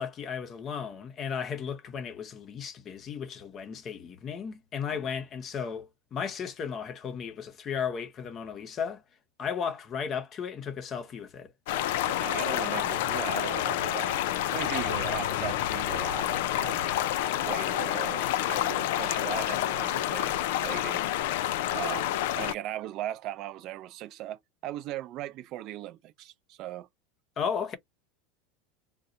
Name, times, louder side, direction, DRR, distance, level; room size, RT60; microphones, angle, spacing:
voice 1, 0.0-9.0 9.4-11.5 27.4-27.8, left 7 dB, 35° left, 0.7 m, -35 dB
sound 1, 11.7-22.5, left 13 dB, 75° left, 0.4 m, -29 dB
voice 2, 12.1-16.9 17.4-21.0 21.7-26.9, right 13 dB, 50° right, 0.5 m, -38 dB
3.9 x 2.1 x 2.7 m
supercardioid pair, 130°, 0 cm